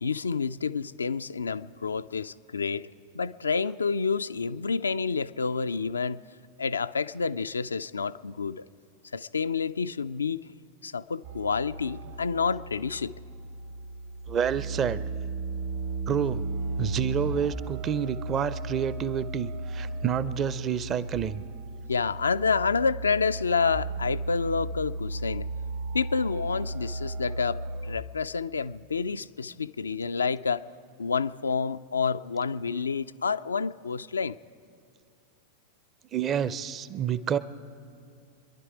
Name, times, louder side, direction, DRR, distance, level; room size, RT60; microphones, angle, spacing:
voice 1, 0.0-2.9 3.1-6.2 6.6-8.7 9.1-10.4 10.8-13.1 21.9-25.5 25.9-30.7 31.0-34.4, left 5 dB, 75° left, 13 dB, 0.3 m, -29 dB
sound 1, 11.2-28.0, right 2 dB, 55° right, 1.1 m, -35 dB
voice 2, 14.3-15.0 16.1-16.4 16.8-21.4 36.1-37.4, right 8 dB, 30° right, 16 dB, 0.5 m, -29 dB
26.5 x 11.0 x 4.9 m, 2.4 s
figure-of-eight pair, 90°, 0 cm